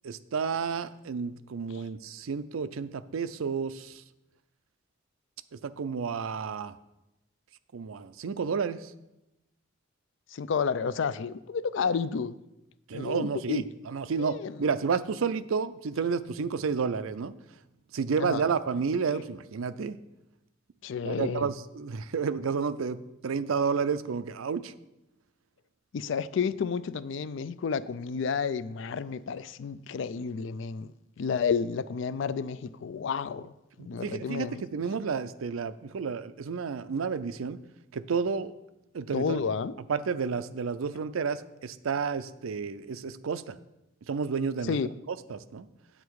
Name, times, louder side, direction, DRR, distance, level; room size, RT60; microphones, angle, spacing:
voice 1, 0.0-4.0 5.5-6.7 7.7-8.9 12.9-17.3 17.9-20.0 21.0-24.7 33.8-37.6 37.9-38.5 38.9-39.4 39.9-43.6 44.1-44.8 45.1-45.7, right 5 dB, 85° right, 0.5 m, -31 dB
voice 2, 10.3-12.4 12.9-13.7 14.1-14.6 18.2-18.4 20.8-21.5 25.9-33.5 33.8-34.6 39.1-39.8 44.6-44.9, left 6 dB, 65° left, 0.4 m, -31 dB
8.8 x 8.0 x 4.7 m
head